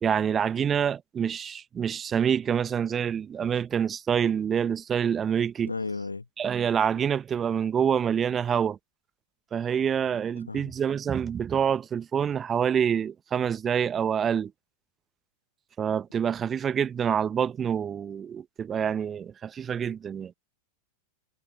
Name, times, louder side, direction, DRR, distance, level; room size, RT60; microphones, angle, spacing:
voice 1, 0.0-5.7 6.4-8.8 9.5-14.5 15.8-20.3, right 8 dB, 25° right, 1.0 m, -26 dB
voice 2, 5.6-6.3 9.7-10.2 10.5-10.7, left 3 dB, 80° left, 1.4 m, -35 dB
figure-of-eight pair, 90°, 0 cm